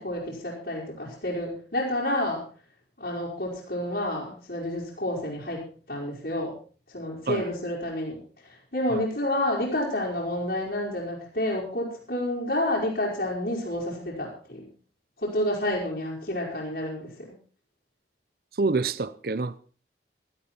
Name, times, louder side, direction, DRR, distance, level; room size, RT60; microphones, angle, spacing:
voice 1, 0.0-2.4 3.0-6.5 6.9-8.2 8.5-14.7 15.2-17.3, left 1 dB, 65° left, 4.7 m, -29 dB
voice 2, 18.6-19.6, right 3 dB, 55° right, 0.7 m, -27 dB
16.5 x 13.0 x 4.4 m
head